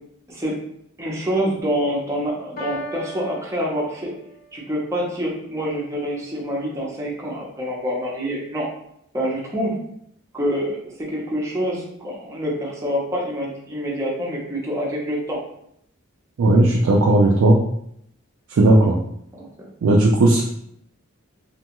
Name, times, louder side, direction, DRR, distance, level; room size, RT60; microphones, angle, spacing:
voice 1, 1.0-4.1 4.5-8.7 9.1-9.8 10.3-10.8 11.1-15.4 18.7-18.9 19.4-19.5, equal, 15° right, -4 dB, 0.7 m, -26 dB
Piano, 2.6-4.5, equal, 40° left, 0.5 m, -35 dB
voice 2, 16.4-17.6 18.6-19.0 19.8-20.4, right 2 dB, 75° right, -2 dB, 0.4 m, -15 dB
2.8 x 2.3 x 2.9 m, 0.73 s
head